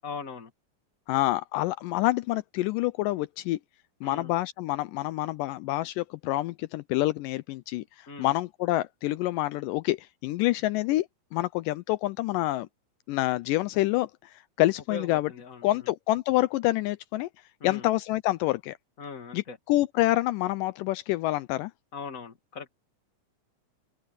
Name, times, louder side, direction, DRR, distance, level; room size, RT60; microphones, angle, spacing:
voice 1, 0.0-0.5 4.0-4.3 8.1-8.3 14.9-15.9 17.6-17.9 19.0-19.6 21.9-22.7, left 5 dB, 25° left, 2.4 m, -40 dB
voice 2, 1.1-3.6 4.0-11.1 11.3-12.7 13.1-15.3 15.6-17.3 17.6-18.8 19.3-21.7, left 17 dB, 80° left, 2.1 m, -27 dB
omnidirectional pair, 3.9 m